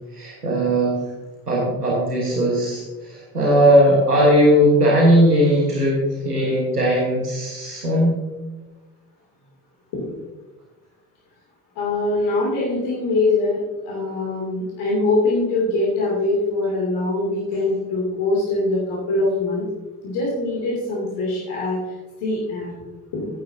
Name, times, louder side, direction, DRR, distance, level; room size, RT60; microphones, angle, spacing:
voice 1, 0.1-1.0 1.5-8.2, equal, 90° right, -4 dB, 1.4 m, -18 dB
voice 2, 11.7-19.6 20.0-22.7 23.1-23.3, left 2 dB, 60° left, -5 dB, 2.9 m, -23 dB
14.0 x 9.1 x 2.7 m, 1.2 s
figure-of-eight pair, 45°, 45 cm